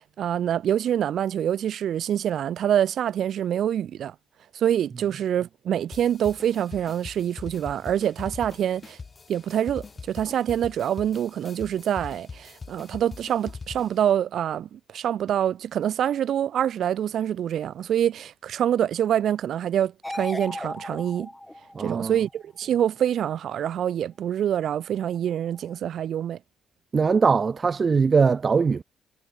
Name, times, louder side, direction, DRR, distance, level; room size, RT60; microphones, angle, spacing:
voice 1, 0.0-4.1 4.5-9.0 9.3-21.3 21.8-26.4, right 10 dB, 65° right, 1.3 m, -26 dB
sound 1, 5.9-14.1, left 4 dB, 35° left, 5.4 m, -42 dB
sound 2, 20.0-22.4 25.6-25.7, left 1 dB, 5° left, 1.3 m, -36 dB
voice 2, 21.8-22.2 26.9-28.8, right 5 dB, 40° right, 0.3 m, -21 dB
cardioid pair, 90°, 0 cm